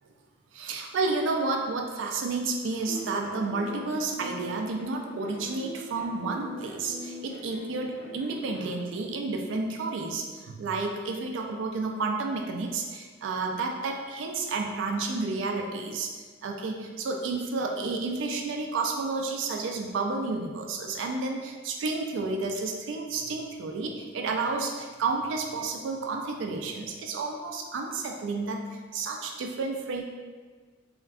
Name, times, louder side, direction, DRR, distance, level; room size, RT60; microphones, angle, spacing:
voice 1, 0.5-16.1 16.4-28.7 28.9-30.0, right 3 dB, 75° right, 2 dB, 0.3 m, -31 dB
sound 1, 2.9-8.3, left 1 dB, 85° left, 0.7 m, -42 dB
3.5 x 2.1 x 2.3 m, 1.4 s
head